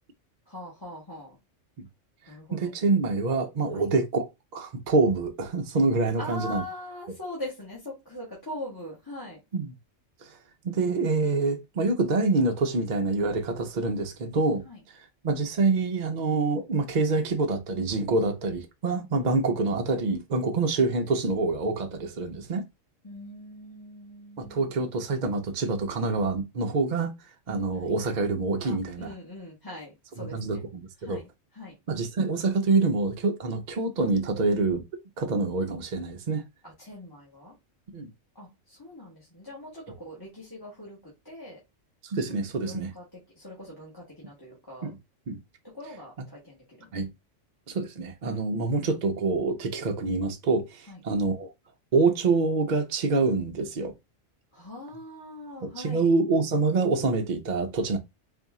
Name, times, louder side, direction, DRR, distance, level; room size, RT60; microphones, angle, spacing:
voice 1, 0.5-1.4 2.3-2.7 3.7-3.9 6.2-9.4 14.6-14.8 19.2-19.4 23.0-24.9 27.7-27.9 28.6-30.6 31.0-31.8 36.6-37.5 38.3-41.6 42.6-44.9 45.6-46.9 48.5-49.0 50.9-51.0 54.5-56.1, left 1 dB, 20° left, 1.4 m, -42 dB
voice 2, 2.5-6.6 9.5-9.7 10.2-10.4 10.6-14.6 15.2-22.6 24.4-27.1 27.5-29.1 30.2-31.2 31.9-34.8 35.2-36.4 37.9-38.1 42.0-42.9 44.8-45.0 45.3-45.4 46.9-47.1 47.7-51.5 51.9-53.9 55.6-58.0, right 3 dB, 50° right, 0.6 m, -26 dB
4.0 x 2.6 x 3.5 m
omnidirectional pair, 1.3 m